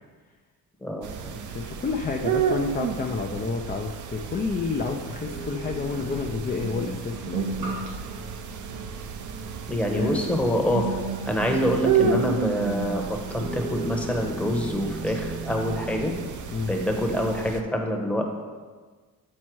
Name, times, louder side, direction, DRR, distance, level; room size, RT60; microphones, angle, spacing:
voice 1, 0.8-1.4 9.7-10.8 11.3-16.1 16.7-18.3, equal, 5° left, 1 dB, 1.0 m, -26 dB
sound 1, 1.0-17.6, right 6 dB, 50° right, 0.6 m, -32 dB
voice 2, 1.5-7.8 9.9-10.2 16.5-16.7, left 4 dB, 25° left, 2 dB, 0.5 m, -30 dB
sound 2, 3.9-4.0 5.2-16.3 16.6-16.9, right 3 dB, 80° right, 1.7 m, -35 dB
7.5 x 4.3 x 4.6 m, 1.4 s
cardioid pair, 105°, 37 cm